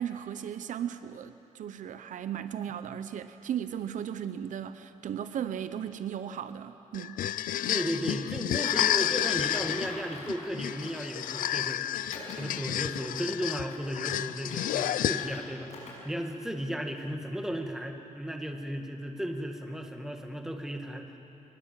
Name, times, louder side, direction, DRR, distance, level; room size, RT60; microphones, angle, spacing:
voice 1, 0.0-7.2, right 9 dB, 70° right, 11 dB, 0.7 m, -36 dB
sound 1, 6.9-15.6, left 12 dB, 85° left, 0.5 m, -31 dB
voice 2, 7.7-11.9 12.4-21.2, equal, 5° right, 4 dB, 1.7 m, -35 dB
Typing, 9.2-11.5 12.1-12.4 13.0-13.1 13.6-15.4 15.7-15.9 16.3-16.4 17.0-17.1, left 2 dB, 55° left, 6.8 m, -45 dB
24.0 x 20.0 x 7.5 m, 2.9 s
cardioid pair, 135°, 14 cm